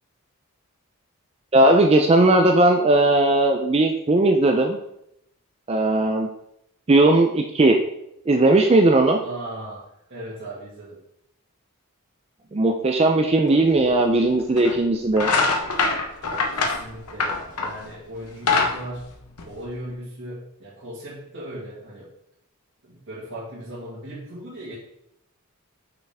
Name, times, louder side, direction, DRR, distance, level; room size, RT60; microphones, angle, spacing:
voice 1, 1.5-4.8 5.7-6.3 6.9-7.8 8.3-9.2 12.5-15.3, right 2 dB, 25° right, 4 dB, 0.4 m, -18 dB
voice 2, 9.2-11.0 16.2-19.1 19.4-22.1 22.8-24.7, right 1 dB, 55° right, -9 dB, 1.9 m, -37 dB
sound 1, 13.8-13.9 14.6-14.8 15.1-17.8 18.2-19.9, left 4 dB, 85° left, 0.9 m, -23 dB
6.1 x 5.5 x 3.4 m, 0.78 s
head